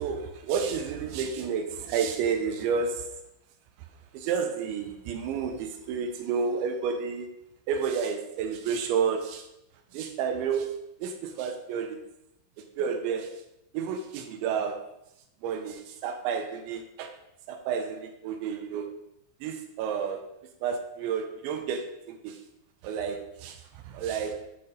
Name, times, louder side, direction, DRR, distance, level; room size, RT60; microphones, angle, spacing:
voice 1, 0.0-3.2 4.1-7.3 7.7-9.5 9.9-10.7 11.0-12.0 12.8-13.3 13.7-14.9 15.4-17.1 17.5-19.0 19.4-20.3 20.6-22.4 22.8-24.4, right 6 dB, 80° right, 4 dB, 2.9 m, -31 dB
8.6 x 4.4 x 5.1 m, 0.82 s
omnidirectional pair, 5.7 m